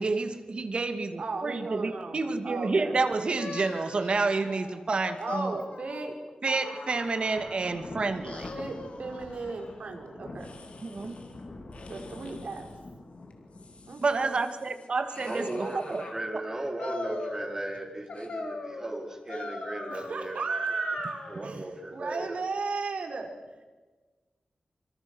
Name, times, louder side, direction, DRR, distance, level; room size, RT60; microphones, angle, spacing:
voice 1, 0.0-5.6 6.4-8.5 10.8-11.2 14.0-16.0 16.3-16.4, right 3 dB, 50° right, 8 dB, 2.4 m, -29 dB
voice 2, 1.2-2.2 2.4-3.0 5.2-6.1 8.5-10.5 11.9-12.6 13.9-14.4 19.9-21.6 21.9-23.3, right 4 dB, 70° right, 3 dB, 5.0 m, -35 dB
sound 1, 3.4-7.8 8.2-9.8 10.4-11.3 11.7-12.7 13.3-16.2 16.8-17.8 18.1-21.5, left 3 dB, 70° left, 4.0 m, -42 dB
Thunder, 7.1-14.3, left 2 dB, 50° left, 4.1 m, -45 dB
voice 3, 15.2-20.4 21.3-22.4, right 1 dB, 25° right, 3 dB, 4.6 m, -36 dB
26.5 x 26.0 x 6.4 m, 1.3 s
wide cardioid pair, 120°, 2 cm